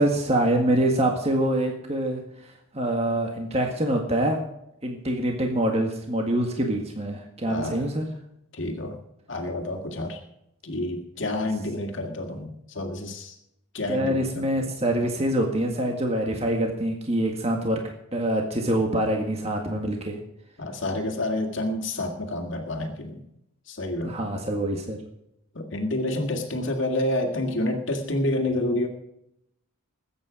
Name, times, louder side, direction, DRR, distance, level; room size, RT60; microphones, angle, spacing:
voice 1, 0.0-4.4 4.8-8.1 13.9-17.8 18.1-20.2 24.0-25.0, right 1 dB, 30° right, 2 dB, 1.8 m, -25 dB
voice 2, 7.5-7.8 8.5-9.0 9.3-10.2 10.6-13.4 13.7-14.7 20.6-23.3 23.7-24.2 25.6-28.9, left 1 dB, 60° left, 3 dB, 2.0 m, -29 dB
21.0 x 8.8 x 5.0 m, 0.80 s
head